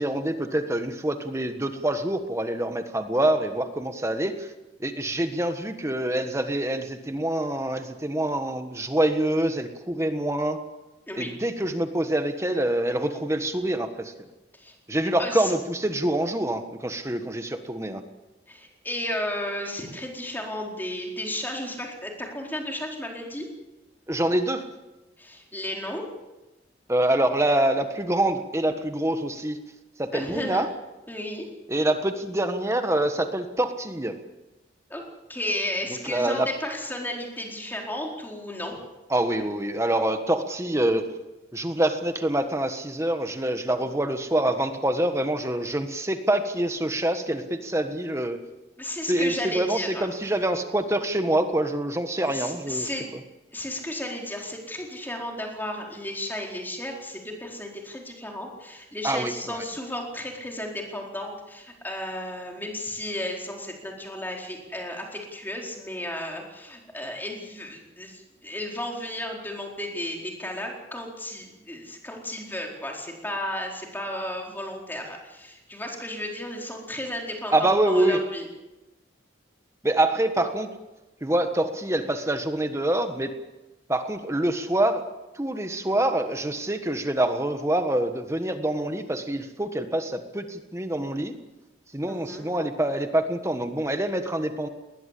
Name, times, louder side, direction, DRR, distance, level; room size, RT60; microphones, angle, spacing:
voice 1, 0.0-4.5 4.8-10.6 11.2-14.1 14.9-18.0 24.1-24.7 26.9-29.6 30.0-30.7 31.7-34.2 36.1-36.5 39.1-41.0 41.5-48.4 49.1-52.9 59.0-59.6 77.5-78.2 79.8-80.7 81.2-83.3 83.9-85.0 85.3-91.3 91.9-94.7, right 1 dB, 15° right, 7 dB, 1.4 m, -26 dB
voice 2, 15.2-15.5 18.5-23.5 25.2-26.0 30.1-30.6 31.1-31.5 34.9-35.0 35.3-38.7 48.8-50.1 52.2-53.1 53.5-78.5 92.1-92.5, left 1 dB, 10° left, 0 dB, 4.4 m, -33 dB
20.5 x 20.0 x 8.4 m, 1.0 s
head